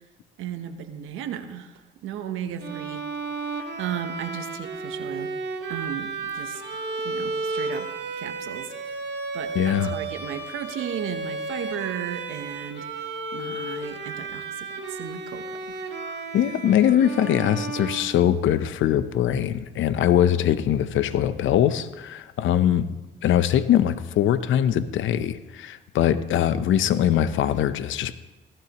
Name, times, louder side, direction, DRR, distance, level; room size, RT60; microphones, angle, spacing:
voice 1, 0.4-3.0 3.8-5.3 5.7-6.6 7.0-7.9 8.2-8.7 9.3-12.9 13.3-15.8, right 9 dB, 90° right, 8 dB, 0.9 m, -35 dB
Bowed string instrument, 2.6-18.7, right 3 dB, 60° right, 1.8 m, -33 dB
voice 2, 9.5-9.9 16.3-22.9 23.2-28.1, left 10 dB, 75° left, 13 dB, 0.7 m, -22 dB
15.0 x 15.0 x 3.0 m, 1.1 s
cardioid pair, 90°, 20 cm